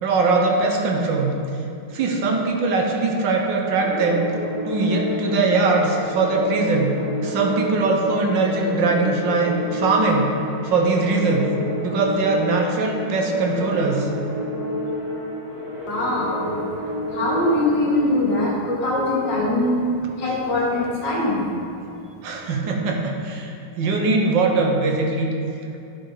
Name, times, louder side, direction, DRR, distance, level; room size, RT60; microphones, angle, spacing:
voice 1, 0.0-1.3 1.9-4.2 4.6-6.9 7.2-10.3 10.6-11.5 11.8-14.1 22.2-23.5 23.8-25.3, right 3 dB, 70° right, 1 dB, 1.5 m, -21 dB
sound 1, 3.8-18.2, equal, 35° right, 2.2 m, -30 dB
voice 2, 15.9-16.6 17.1-19.9 20.2-21.5, left 1 dB, 65° left, -4 dB, 2.1 m, -22 dB
10.0 x 4.8 x 4.7 m, 2.6 s
omnidirectional pair, 2.1 m